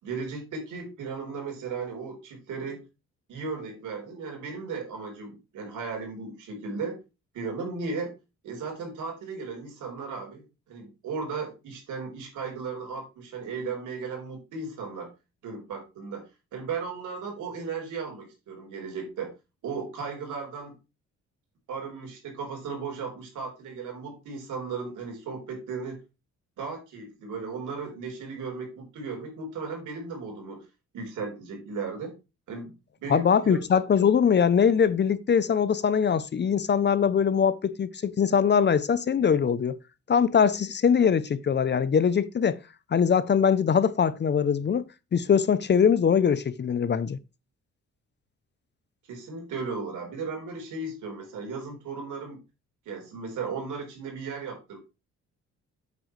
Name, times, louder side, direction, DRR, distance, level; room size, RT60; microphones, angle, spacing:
voice 1, 0.0-2.8 3.3-7.0 7.3-8.1 8.4-15.1 15.4-19.3 19.6-20.7 21.7-26.0 26.6-30.7 30.9-32.1 32.5-32.7 33.0-33.6 49.1-52.4 52.9-54.8, right 4 dB, 80° right, 4.3 m, -36 dB
voice 2, 33.1-39.8 40.1-42.6 42.9-44.8 45.1-47.2, left 7 dB, 35° left, 0.7 m, -22 dB
8.4 x 8.2 x 3.3 m
cardioid pair, 90°, 30 cm